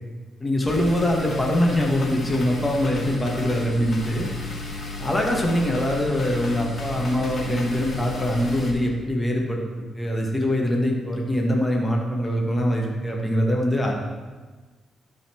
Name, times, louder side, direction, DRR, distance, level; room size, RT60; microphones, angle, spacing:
voice 1, 0.4-4.3 5.0-9.6 9.9-13.9, equal, 15° left, -1 dB, 1.6 m, -23 dB
sound 1, 0.7-8.7, left 3 dB, 35° left, 1.9 m, -33 dB
12.0 x 4.3 x 4.5 m, 1.3 s
cardioid pair, 115°, 0 cm